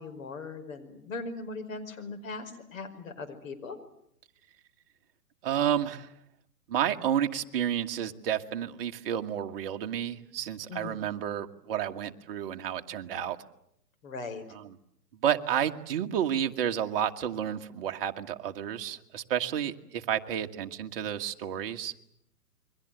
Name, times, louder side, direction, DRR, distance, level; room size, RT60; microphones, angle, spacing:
voice 1, 0.0-3.8 10.7-11.0 14.0-14.4, left 3 dB, 55° left, 7 dB, 5.4 m, -39 dB
voice 2, 5.4-6.1 6.7-13.4 14.5-14.8 15.2-21.9, right 9 dB, 35° right, 5 dB, 1.6 m, -31 dB
29.0 x 23.0 x 7.9 m, 0.74 s
hypercardioid pair, 145°, 47 cm